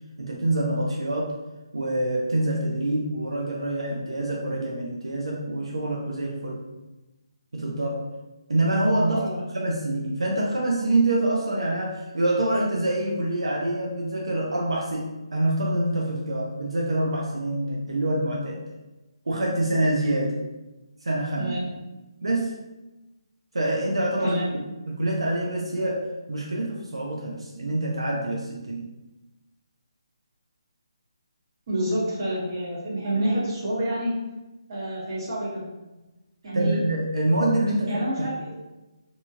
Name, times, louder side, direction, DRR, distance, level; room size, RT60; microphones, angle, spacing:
voice 1, 0.2-1.3 1.7-6.6 7.5-8.1 8.5-18.6 19.3-20.4 21.0-21.6 22.2-22.5 23.5-28.8 36.5-38.0, right 1 dB, 90° right, -3 dB, 0.6 m, -26 dB
voice 2, 9.1-9.4 21.4-21.7 24.2-24.5 31.7-34.2 34.7-35.7 36.4-36.8 37.9-38.3, right 1 dB, 40° right, -7 dB, 1.3 m, -28 dB
2.8 x 2.7 x 2.4 m, 1.1 s
hypercardioid pair, 160°, 3 cm